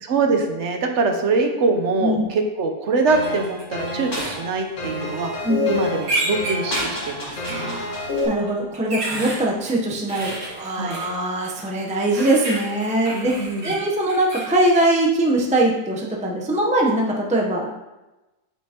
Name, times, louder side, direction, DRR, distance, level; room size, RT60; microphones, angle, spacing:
voice 1, 0.0-7.7 10.8-11.0 13.1-13.7, right 3 dB, 55° right, 4 dB, 1.0 m, -23 dB
sound 1, 3.1-8.3, left 2 dB, 50° left, 1.9 m, -28 dB
sound 2, 3.2-3.6 4.1-4.4 6.0-6.9 7.5-7.6 8.5-9.4 10.1-11.1 12.1-14.5, right 2 dB, 80° right, 2.6 m, -29 dB
voice 2, 7.5-13.3 13.6-17.7, right 1 dB, 10° right, -1 dB, 0.3 m, -22 dB
8.2 x 5.5 x 2.9 m, 1.0 s
omnidirectional pair, 1.7 m